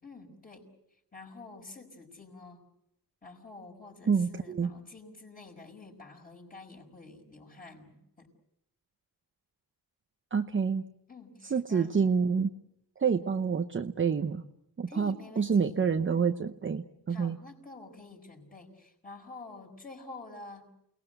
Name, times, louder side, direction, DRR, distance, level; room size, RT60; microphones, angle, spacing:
voice 1, 0.0-0.7 1.1-2.6 3.2-8.3 11.1-12.0 14.9-15.8 17.1-20.7, left 3 dB, 20° left, 0 dB, 5.6 m, -48 dB
voice 2, 4.1-4.7 10.3-10.8 11.5-12.5 13.0-14.4 14.8-17.4, right 6 dB, 30° right, 6 dB, 0.9 m, -28 dB
29.0 x 19.5 x 7.9 m, 0.78 s
wide cardioid pair, 145°, 38 cm